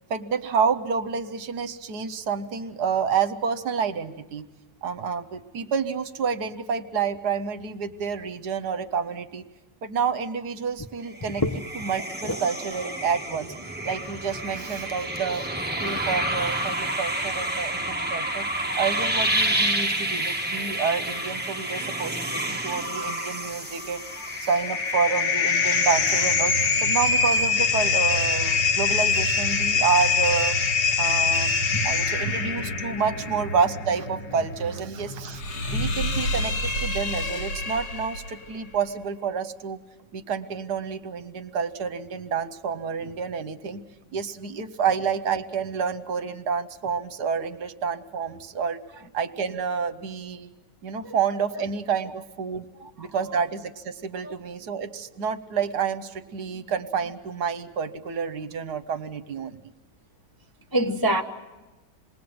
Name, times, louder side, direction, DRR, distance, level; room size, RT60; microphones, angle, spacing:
voice 1, 0.1-4.5 4.8-9.4 9.8-11.4 11.7-13.5 13.8-18.5 18.7-24.0 24.4-26.6 26.8-30.6 31.0-39.8 40.1-43.8 44.1-48.8 49.1-50.5 50.8-52.6 53.0-59.6, right 6 dB, 65° right, 1.5 m, -29 dB
sound 1, 11.1-27.4, right 1 dB, 5° right, 1.3 m, -30 dB
sound 2, 23.8-38.3, left 4 dB, 90° left, 2.5 m, -25 dB
voice 2, 60.7-61.2, equal, 20° left, 0.6 m, -25 dB
27.0 x 20.0 x 7.9 m
omnidirectional pair, 1.9 m